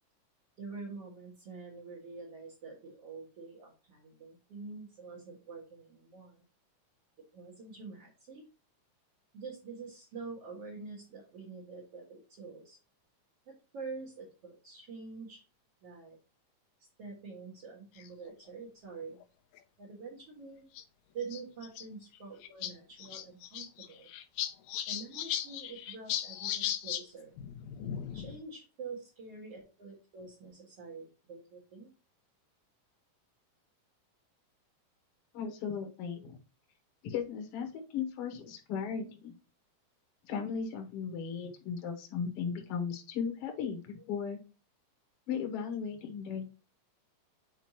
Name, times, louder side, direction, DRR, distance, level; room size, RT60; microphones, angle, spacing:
voice 1, 0.6-6.4 7.3-8.4 9.3-12.8 13.5-15.4 15.8-16.2 17.0-19.2 19.8-20.7 21.1-24.1 24.9-27.4 28.1-31.9 36.1-36.2 39.0-39.1, right 4 dB, 50° right, -3 dB, 2.6 m, -46 dB
sound 1, 18.0-18.3 19.2-19.3 19.6-19.7 20.8-20.9 21.2-21.8 22.2-22.3 22.4-22.7 23.0-27.0 27.4-28.4, left 11 dB, 75° left, 1.8 m, -37 dB
voice 2, 35.3-36.4 37.0-39.3 40.3-44.4 45.3-46.4, left 6 dB, 60° left, 3 dB, 1.8 m, -36 dB
9.1 x 4.9 x 3.0 m, 0.32 s
omnidirectional pair, 3.8 m